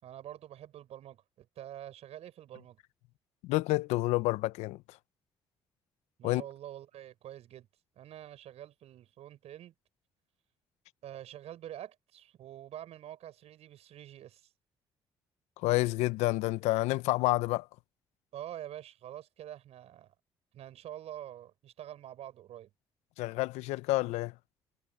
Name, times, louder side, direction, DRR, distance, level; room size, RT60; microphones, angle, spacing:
voice 1, 0.0-2.8 6.2-7.7 8.0-9.7 11.0-14.5 18.3-20.1 20.5-22.7, right 12 dB, 70° right, 5.4 m, -46 dB
voice 2, 3.4-4.8 6.2-6.4 15.6-17.7 23.2-24.3, left 19 dB, 80° left, 0.9 m, -29 dB
hypercardioid pair, 50°, 11 cm